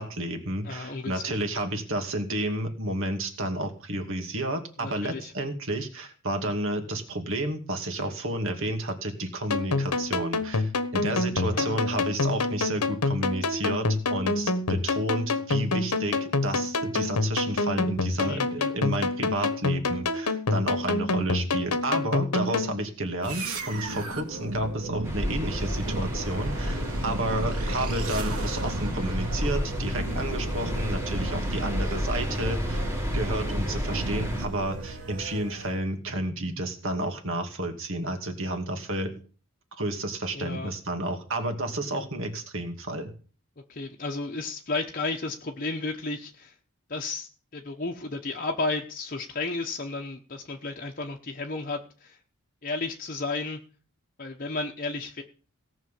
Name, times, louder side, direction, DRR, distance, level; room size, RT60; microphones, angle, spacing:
voice 1, 0.0-32.8 33.1-39.1 39.8-43.1, right 1 dB, 60° right, 5 dB, 2.5 m, -31 dB
voice 2, 0.6-1.2 4.8-5.3 11.5-12.0 18.2-18.7 40.3-40.7 43.7-46.5 46.9-52.2 52.6-53.6 54.2-55.2, left 3 dB, 40° left, 2 dB, 1.0 m, -33 dB
sound 1, 9.5-22.7, left 3 dB, 85° left, 1.2 m, -27 dB
sound 2, 23.2-35.9, right 2 dB, 75° right, 2.1 m, -35 dB
sound 3, 25.0-34.5, equal, 10° right, 2.2 m, -31 dB
17.5 x 6.2 x 7.6 m, 0.39 s
head